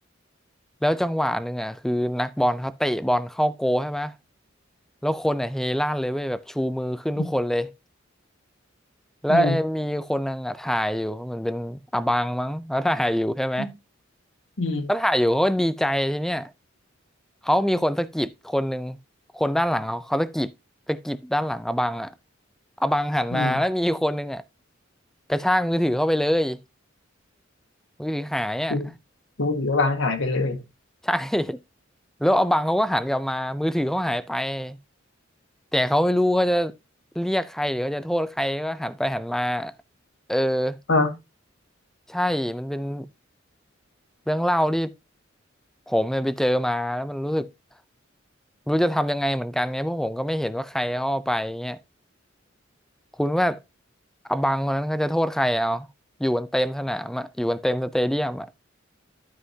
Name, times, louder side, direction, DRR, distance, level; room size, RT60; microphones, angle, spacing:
voice 1, 0.8-4.1 5.0-7.7 9.2-13.7 14.9-16.5 17.4-19.0 19.3-20.5 20.9-22.1 22.8-24.4 25.3-26.6 28.0-28.8 31.0-31.6 32.2-34.8 35.7-36.7 37.2-39.7 40.3-40.8 42.1-43.1 44.3-44.9 45.9-47.5 48.7-51.8 53.2-53.6 54.3-55.9 56.2-58.5, equal, ahead, 0.4 m, -24 dB
voice 2, 14.6-14.9 23.3-23.6 28.7-28.9 29.4-30.6 40.9-41.1, left 3 dB, 75° left, 1.7 m, -23 dB
12.5 x 5.6 x 2.7 m
head